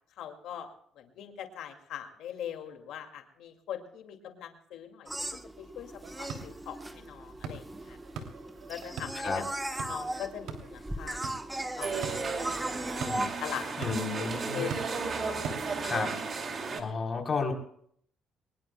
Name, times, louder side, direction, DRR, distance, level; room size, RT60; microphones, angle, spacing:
voice 1, 0.2-0.7 1.0-5.1 5.6-5.9 6.2-8.0 8.7-9.5 9.9-11.2 11.8-11.9 13.4-13.7 14.2-15.5, left 9 dB, 75° left, 4 dB, 2.3 m, -41 dB
sound 1, 5.1-13.3, right 1 dB, 10° right, 1.1 m, -37 dB
sound 2, 6.0-16.2, right 5 dB, 75° right, 3.0 m, -44 dB
sound 3, 11.8-16.8, right 4 dB, 40° right, 2.5 m, -34 dB
voice 2, 13.0-13.3 13.8-14.6 15.8-16.1 16.8-17.5, left 4 dB, 30° left, 1 dB, 3.8 m, -32 dB
23.5 x 20.5 x 2.3 m, 0.63 s
cardioid pair, 125°, 0 cm